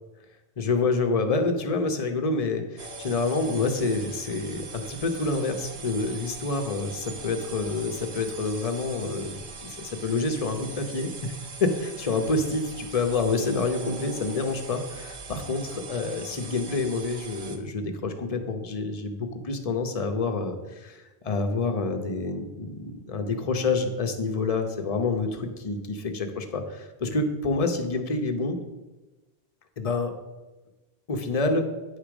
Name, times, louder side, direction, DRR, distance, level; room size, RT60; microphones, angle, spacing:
voice 1, 0.6-11.3 11.6-28.6 29.8-30.1 31.1-31.7, left 3 dB, 35° left, 5 dB, 0.9 m, -28 dB
sound 1, 2.8-17.6, right 4 dB, 85° right, 1.3 m, -41 dB
9.7 x 5.0 x 6.1 m, 1.1 s
omnidirectional pair, 1.1 m